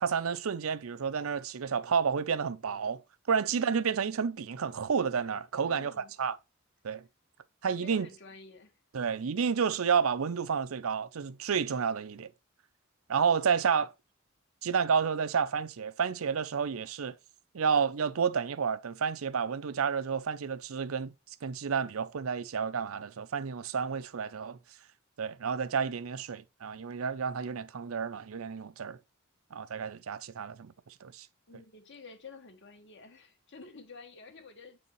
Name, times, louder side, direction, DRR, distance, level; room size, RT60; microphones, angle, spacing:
voice 1, 0.0-3.0 3.3-6.4 6.8-7.0 7.6-8.1 8.9-12.3 13.1-13.9 14.6-17.2 17.5-21.1 21.4-24.6 25.2-29.0 29.5-30.7 31.0-31.3, right 6 dB, 80° right, 0.6 m, -30 dB
voice 2, 3.5-4.0 5.6-6.1 7.6-8.8 31.5-34.8, left 4 dB, 60° left, 1.7 m, -50 dB
7.9 x 4.9 x 3.1 m
head